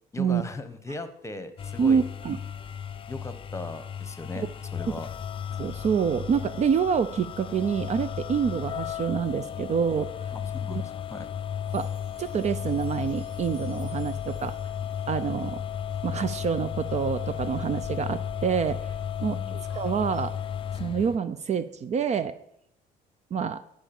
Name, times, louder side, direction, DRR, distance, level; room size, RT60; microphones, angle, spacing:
voice 1, 0.1-2.0 3.1-5.1 10.3-11.3 19.2-19.6, left 2 dB, 15° left, 11 dB, 1.0 m, -38 dB
sound 1, 1.6-21.2, left 9 dB, 30° left, 0.4 m, -34 dB
voice 2, 1.8-2.4 4.4-4.5 5.6-10.1 10.7-10.8 11.7-11.9 12.2-14.6 15.1-15.6 16.0-18.8 19.2-20.3 20.8-22.3 23.3-23.6, right 7 dB, 40° right, 13 dB, 0.5 m, -27 dB
Wind Chimes, 11.6-16.3 16.8-16.9 17.3-17.4 17.9-18.0, right 2 dB, 80° right, 4.2 m, -58 dB
sound 2, 12.1-20.3, right 1 dB, 10° right, 4.6 m, -53 dB
11.5 x 5.0 x 7.0 m, 0.74 s
cardioid pair, 110°, 17 cm